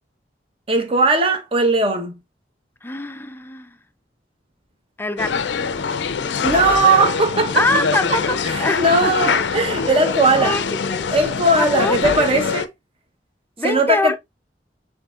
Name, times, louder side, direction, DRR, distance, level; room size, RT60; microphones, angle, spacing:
voice 1, 0.7-2.1 6.4-7.6 8.5-10.6 11.1-12.7 13.6-14.1, right 2 dB, 30° right, 0.9 m, -18 dB
voice 2, 2.8-3.8 5.0-5.5 7.5-9.3 9.8-10.1 10.4-11.1 11.5-12.2 13.6-14.1, left 2 dB, 10° left, 0.4 m, -25 dB
sound 1, 5.2-12.7, left 5 dB, 90° left, 0.5 m, -23 dB
6.5 x 2.9 x 2.4 m
head